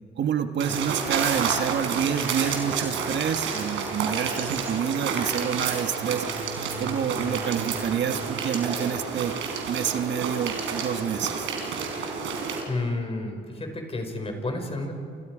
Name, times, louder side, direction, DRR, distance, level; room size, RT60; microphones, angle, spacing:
voice 1, 0.2-9.3 9.7-11.5, right 8 dB, 65° right, 7 dB, 1.5 m, -28 dB
sound 1, 0.6-12.6, right 5 dB, 85° right, 4.4 m, -30 dB
voice 2, 12.7-14.9, left 2 dB, 30° left, 3 dB, 5.8 m, -31 dB
29.5 x 28.0 x 5.0 m, 2.4 s
cardioid pair, 90°, 20 cm